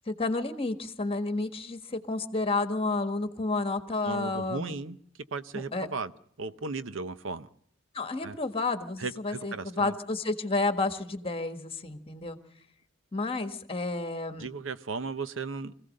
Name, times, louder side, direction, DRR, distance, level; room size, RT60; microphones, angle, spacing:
voice 1, 0.1-4.7 5.7-5.9 7.9-12.4 13.1-14.5, left 3 dB, 30° left, 8 dB, 1.6 m, -31 dB
voice 2, 4.0-5.0 5.3-6.1 6.4-7.5 8.2-8.4 9.0-9.9 14.4-15.8, right 4 dB, 80° right, 13 dB, 0.8 m, -36 dB
25.5 x 16.0 x 6.5 m, 0.65 s
head